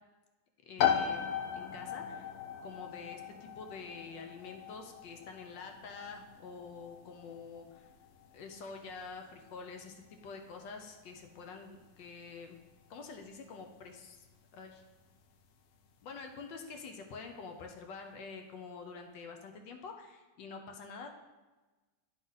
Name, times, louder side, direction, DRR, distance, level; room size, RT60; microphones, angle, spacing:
voice 1, 0.6-1.3 1.5-2.3 2.6-7.9 8.3-12.6 12.9-14.2 14.5-14.8 16.0-21.1, left 4 dB, 85° left, 4 dB, 1.4 m, -47 dB
sound 1, 0.8-15.3, left 8 dB, 70° left, 1.0 m, -39 dB
11.5 x 3.8 x 3.9 m, 1.2 s
omnidirectional pair, 1.9 m